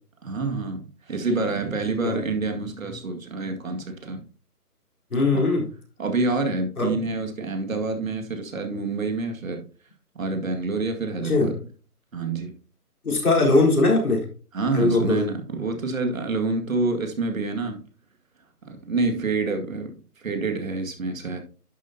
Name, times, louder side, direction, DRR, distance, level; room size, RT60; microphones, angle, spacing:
voice 1, 0.2-4.2 5.3-5.4 6.0-9.6 10.2-11.5 12.1-12.5 14.5-17.8 18.7-21.4, right 3 dB, 60° right, 2.1 m, -27 dB
voice 2, 5.1-5.6 6.8-6.9 11.2-11.5 13.0-14.2 14.7-15.2, left 2 dB, 65° left, 4.2 m, -20 dB
10.5 x 7.3 x 2.8 m
figure-of-eight pair, 160°, 46 cm